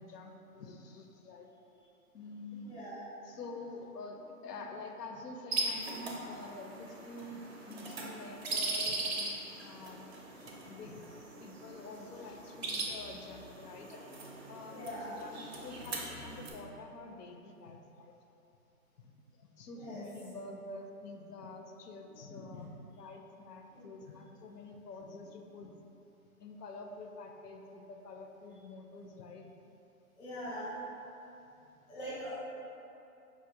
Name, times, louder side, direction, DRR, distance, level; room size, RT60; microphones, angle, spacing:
voice 1, 0.0-1.5 2.1-2.9 3.2-14.0 14.5-18.1 19.4-25.7 26.4-29.5, left 2 dB, 85° left, 3 dB, 0.5 m, -47 dB
voice 2, 2.6-3.0 14.7-15.2 19.7-20.0 23.7-23.9 30.2-30.7 31.9-32.4, equal, 5° left, -12 dB, 0.5 m, -42 dB
sound 1, 5.5-16.5, right 2 dB, 45° right, 0.4 m, -40 dB
4.7 x 2.0 x 2.5 m, 2.8 s
hypercardioid pair, 140°, 46 cm